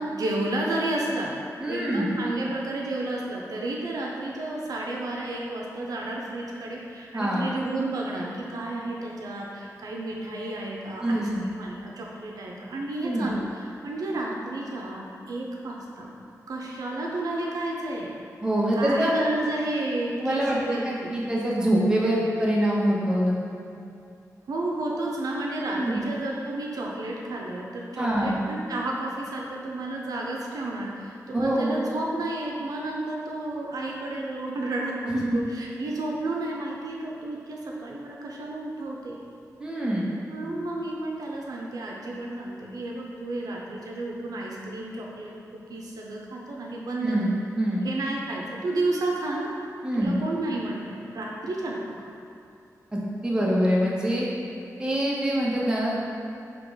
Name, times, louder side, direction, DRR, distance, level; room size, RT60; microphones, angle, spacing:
voice 1, 0.0-1.3 1.6-16.1 16.5-18.1 18.8-21.1 24.5-39.2 40.3-47.2 47.8-49.5 50.0-52.1, right 2 dB, 80° right, -2 dB, 0.5 m, -31 dB
voice 2, 1.6-2.1 7.1-7.4 11.0-11.4 13.0-13.3 18.4-19.1 20.2-20.6 20.8-23.3 25.7-26.0 28.0-28.4 31.3-31.8 35.1-35.4 39.6-40.1 47.0-47.8 49.8-50.2 52.9-54.3 54.8-56.0, right 1 dB, 15° right, -5 dB, 0.7 m, -25 dB
3.6 x 2.9 x 3.9 m, 2.6 s
wide cardioid pair, 100°, 6 cm